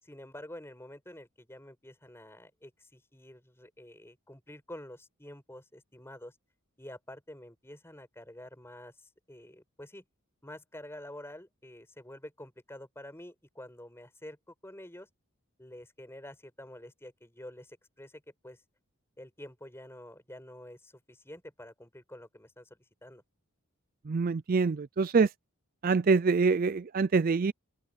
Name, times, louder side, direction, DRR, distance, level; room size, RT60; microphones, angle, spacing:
voice 1, 0.0-6.4 6.8-10.0 10.4-15.1 15.6-18.6 19.2-23.2, left 1 dB, 10° left, 5.8 m, -48 dB
voice 2, 24.1-25.3 25.8-27.5, right 4 dB, 40° right, 0.4 m, -25 dB
open air
head